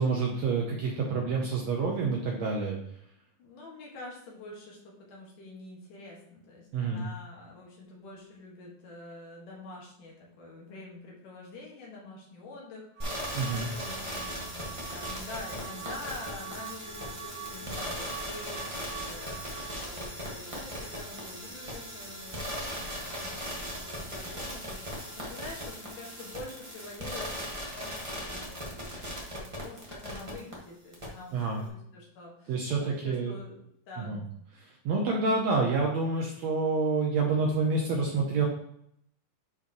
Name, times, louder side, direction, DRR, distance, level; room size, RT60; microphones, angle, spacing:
voice 1, 0.0-2.8 6.7-7.1 13.3-13.7 31.3-31.6 32.5-33.3 34.0-34.2 34.6-38.5, right 4 dB, 65° right, -1 dB, 1.8 m, -28 dB
voice 2, 3.4-33.6 33.9-34.3, left 2 dB, 70° left, -3 dB, 3.2 m, -46 dB
sound 1, 13.0-30.5 30.9-31.0, equal, 40° right, 0.4 m, -38 dB
sound 2, 13.0-20.0, right 15 dB, 85° right, 2.4 m, -46 dB
10.0 x 4.9 x 3.1 m, 0.70 s
omnidirectional pair, 4.0 m